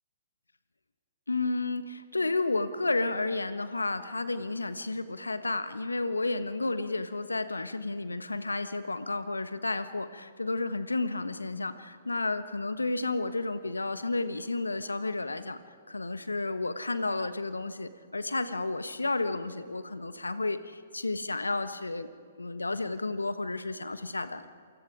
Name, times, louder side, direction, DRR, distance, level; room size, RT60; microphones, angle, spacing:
voice 1, 1.3-15.6 15.9-22.1 22.4-24.5, left 3 dB, 80° left, 11 dB, 1.3 m, -32 dB
28.0 x 25.0 x 5.0 m, 2.2 s
figure-of-eight pair, 120°, 0 cm